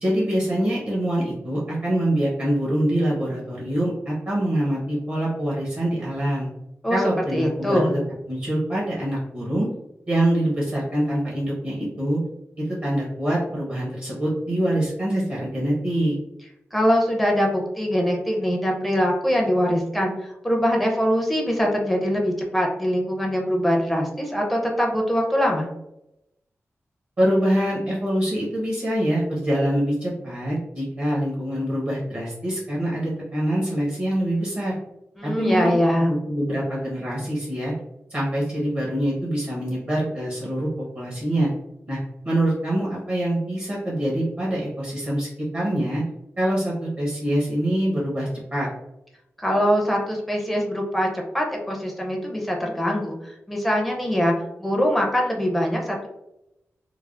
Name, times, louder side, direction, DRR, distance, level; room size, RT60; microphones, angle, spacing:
voice 1, 0.0-6.5 6.9-8.0 8.3-9.7 10.1-12.2 12.6-16.2 27.2-34.8 35.2-35.8 36.1-37.7 38.1-41.5 41.9-42.0 42.2-45.3 45.5-46.0 46.4-48.7, right 1 dB, 40° right, -5 dB, 0.7 m, -24 dB
voice 2, 7.3-7.9 16.7-25.7 35.2-36.1 49.4-54.3 54.6-56.1, equal, ahead, -1 dB, 0.5 m, -23 dB
3.2 x 2.0 x 2.4 m, 0.87 s
wide cardioid pair, 150°, 5 cm